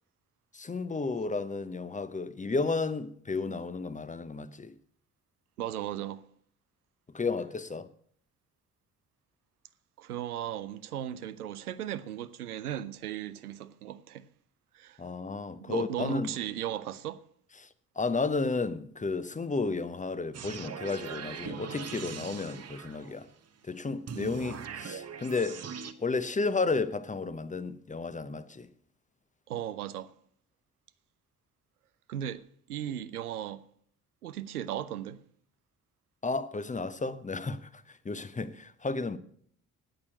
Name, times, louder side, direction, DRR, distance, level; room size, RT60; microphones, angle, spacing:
voice 1, 0.5-4.7 7.1-7.9 15.0-16.3 17.6-17.7 18.0-23.3 23.6-25.6 26.0-28.7 36.2-39.2, left 3 dB, 15° left, 0.8 m, -32 dB
voice 2, 5.6-6.2 10.0-14.3 14.7-15.0 15.6-17.2 29.5-30.1 32.1-33.6 34.2-35.2, right 11 dB, 85° right, 0.5 m, -36 dB
sound 1, 20.3-23.3 24.1-25.9, right 7 dB, 35° right, 1.0 m, -41 dB
8.9 x 8.7 x 9.0 m
figure-of-eight pair, 40°, 44 cm